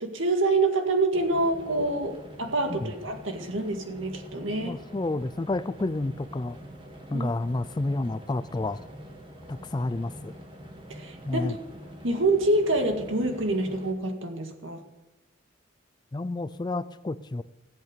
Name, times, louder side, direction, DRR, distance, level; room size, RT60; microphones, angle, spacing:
voice 1, 0.0-4.8 7.1-7.3 10.9-11.6 12.0-14.8, right 2 dB, 80° right, 4 dB, 1.9 m, -26 dB
sound 1, 1.1-13.9, equal, 25° right, 1.9 m, -45 dB
voice 2, 4.6-6.6 7.1-8.8 9.5-10.3 11.3-11.6 16.1-17.4, left 2 dB, 20° left, 15 dB, 0.4 m, -30 dB
15.5 x 8.1 x 6.8 m, 1.0 s
head